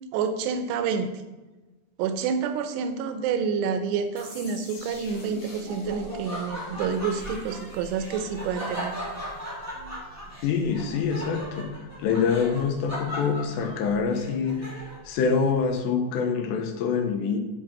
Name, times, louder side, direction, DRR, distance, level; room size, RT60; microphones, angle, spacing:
voice 1, 0.1-1.1 2.0-9.0, right 6 dB, 85° right, 8 dB, 2.9 m, -28 dB
sound 1, 4.2-10.9, equal, 50° left, 4.2 m, -46 dB
Laughter, 5.1-15.1, equal, 10° right, 0.7 m, -37 dB
voice 2, 10.4-11.7 12.0-17.4, left 5 dB, 80° left, 5 dB, 3.2 m, -25 dB
10.0 x 4.6 x 5.9 m, 1.2 s
omnidirectional pair, 5.0 m